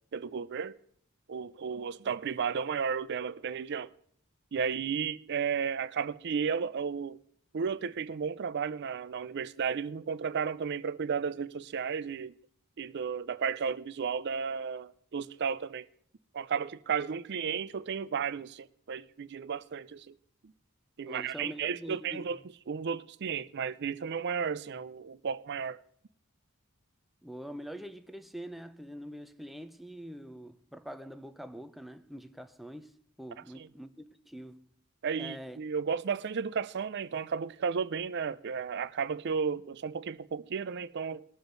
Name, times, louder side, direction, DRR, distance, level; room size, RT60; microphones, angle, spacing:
voice 1, 0.1-0.8 1.3-3.9 4.5-7.2 7.5-12.3 12.8-15.9 16.3-20.1 21.0-22.4 22.7-25.8 33.6-33.7 35.0-41.3, right 6 dB, 55° right, 0.4 m, -33 dB
voice 2, 21.1-22.3 27.2-32.9 33.2-34.6 35.2-35.6, equal, ahead, 0.6 m, -44 dB
21.0 x 6.9 x 3.9 m
head